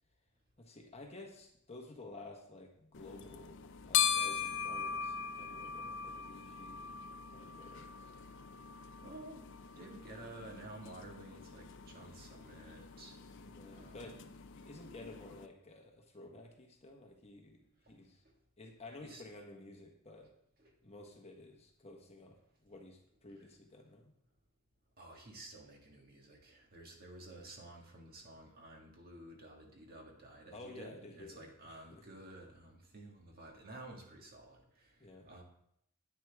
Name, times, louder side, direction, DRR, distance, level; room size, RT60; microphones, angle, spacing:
voice 1, 0.6-8.1 13.3-14.2 14.5-17.6 17.9-18.2 18.6-20.3 20.8-22.4 22.6-24.1 30.5-32.0 35.0-35.3, left 2 dB, 30° left, 2 dB, 1.2 m, -53 dB
sound 1, 2.9-15.5, left 7 dB, 55° left, 0.5 m, -40 dB
voice 2, 8.7-13.2 13.7-14.3 19.0-19.2 25.0-35.4, right 1 dB, 45° right, 0 dB, 1.9 m, -52 dB
10.0 x 9.3 x 3.5 m, 0.74 s
head